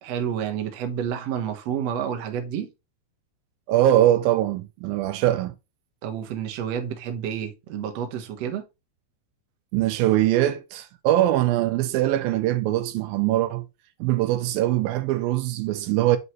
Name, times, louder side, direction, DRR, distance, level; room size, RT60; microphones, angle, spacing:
voice 1, 0.0-2.7 6.0-8.6, right 8 dB, 65° right, 1.7 m, -29 dB
voice 2, 3.7-5.5 9.7-13.7 14.0-16.2, right 13 dB, 80° right, 2.3 m, -22 dB
7.7 x 5.4 x 3.0 m
omnidirectional pair, 4.3 m